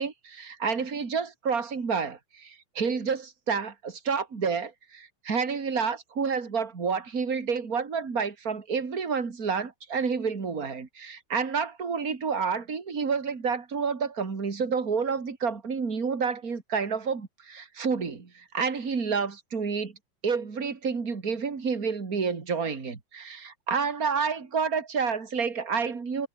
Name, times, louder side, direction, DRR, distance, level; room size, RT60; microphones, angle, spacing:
voice 1, 0.0-19.9 20.2-26.3, right 5 dB, 25° right, 2.5 m, -29 dB
omnidirectional pair, 4.7 m